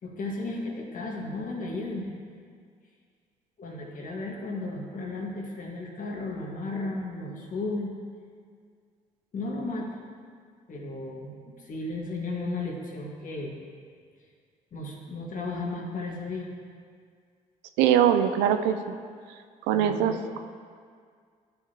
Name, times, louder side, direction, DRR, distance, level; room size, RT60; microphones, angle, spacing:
voice 1, 0.0-2.1 3.6-7.9 9.3-9.9 10.7-13.6 14.7-16.5 19.7-20.2, left 2 dB, 50° left, -1 dB, 1.6 m, -34 dB
voice 2, 17.8-18.8 19.7-20.4, right 9 dB, 80° right, 8 dB, 0.5 m, -22 dB
12.0 x 5.7 x 2.9 m, 2.1 s
hypercardioid pair, 50°, 17 cm